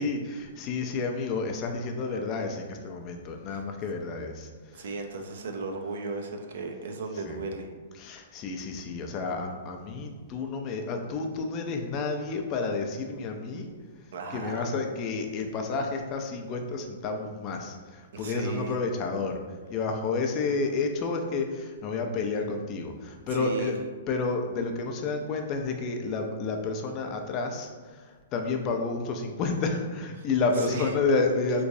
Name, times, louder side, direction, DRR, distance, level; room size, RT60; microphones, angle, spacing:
voice 1, 0.0-4.5 7.2-7.4 8.0-13.7 14.3-19.4 19.7-23.8 24.1-27.7 28.3-31.6, left 3 dB, 30° left, 3 dB, 0.4 m, -30 dB
voice 2, 4.7-7.7 14.1-14.7 18.1-18.8 23.3-23.7 30.2-30.9, right 3 dB, 70° right, 4 dB, 0.5 m, -36 dB
3.5 x 3.0 x 2.6 m, 1.4 s
hypercardioid pair, 145°, 0 cm